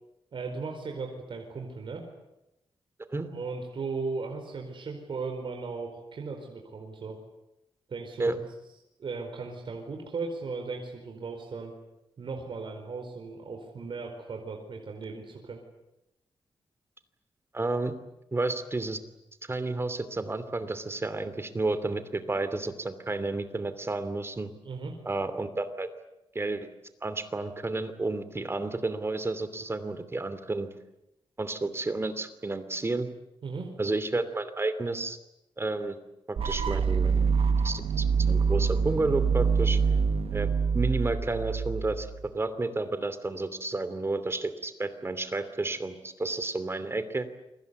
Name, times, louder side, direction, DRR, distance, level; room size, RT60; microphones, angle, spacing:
voice 1, 0.3-2.1 3.2-7.2 7.9-8.4 9.0-11.7 12.2-15.6 24.6-24.9 33.4-33.8, right 4 dB, 60° right, 2 dB, 4.7 m, -37 dB
voice 2, 17.5-17.9 18.3-19.0 19.4-24.5 25.0-25.9 26.3-26.7 27.0-30.7 31.4-33.1 33.8-35.2 35.6-36.0 36.3-37.3 37.6-39.8 40.3-47.3, right 2 dB, 25° right, 12 dB, 2.8 m, -31 dB
sound 1, 36.4-42.3, right 5 dB, 85° right, 1.3 m, -26 dB
29.0 x 24.0 x 8.3 m, 0.89 s
wide cardioid pair, 115°, 10 cm